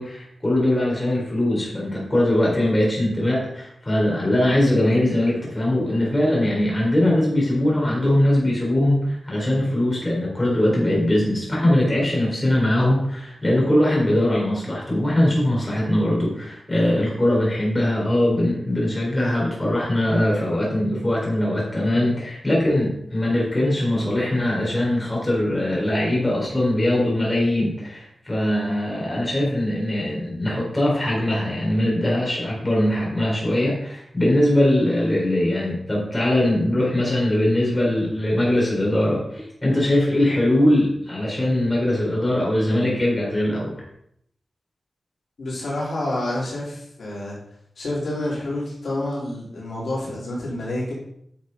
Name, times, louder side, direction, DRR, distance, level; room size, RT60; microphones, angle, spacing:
voice 1, 0.0-43.8, left 1 dB, 15° left, -4 dB, 4.2 m, -21 dB
voice 2, 45.4-47.4 47.8-50.9, left 1 dB, 65° left, -5 dB, 4.2 m, -28 dB
10.0 x 6.5 x 5.4 m, 0.72 s
wide cardioid pair, 150°, 0 cm